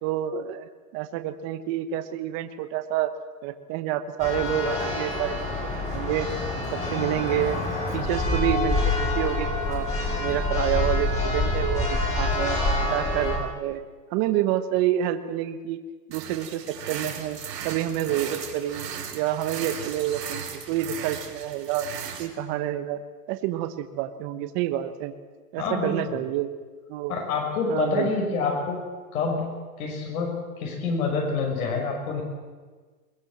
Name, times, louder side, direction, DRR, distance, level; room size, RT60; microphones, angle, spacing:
voice 1, 0.0-3.1 3.4-5.4 5.6-6.3 6.7-7.6 7.9-9.9 10.2-12.6 12.9-13.8 14.1-15.8 16.1-17.4 17.6-21.9 22.2-23.0 23.3-25.1 25.5-26.5 26.9-27.2 27.7-28.4, right 12 dB, 30° right, 10 dB, 1.3 m, -28 dB
Church bell, 4.2-13.4, left 2 dB, 15° left, 4.5 m, -26 dB
sound 1, 16.1-22.3, right 7 dB, 85° right, 5.2 m, -36 dB
voice 2, 25.6-26.2 27.1-28.8 29.1-29.4 29.8-32.2, left 4 dB, 60° left, 0 dB, 6.4 m, -27 dB
22.0 x 20.5 x 7.7 m, 1.4 s
hypercardioid pair, 155°, 48 cm